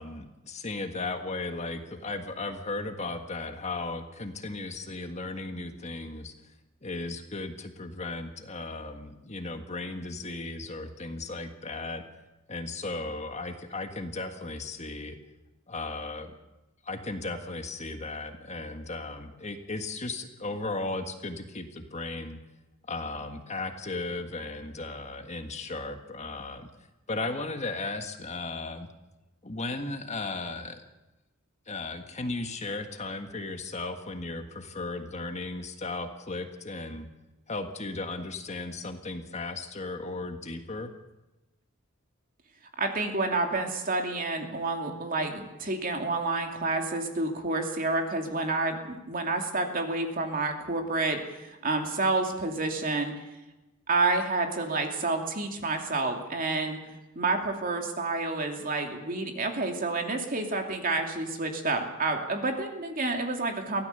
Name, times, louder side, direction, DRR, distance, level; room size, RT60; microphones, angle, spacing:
voice 1, 0.0-6.3 6.8-12.0 12.5-15.2 15.7-16.4 16.8-22.4 22.9-26.7 27.1-28.9 29.4-30.8 31.7-37.1 37.5-40.9, left 3 dB, 35° left, 6 dB, 1.6 m, -36 dB
voice 2, 42.8-53.1 53.9-56.8 57.2-63.8, right 3 dB, 45° right, 3 dB, 2.8 m, -29 dB
23.5 x 16.5 x 6.8 m, 1.0 s
head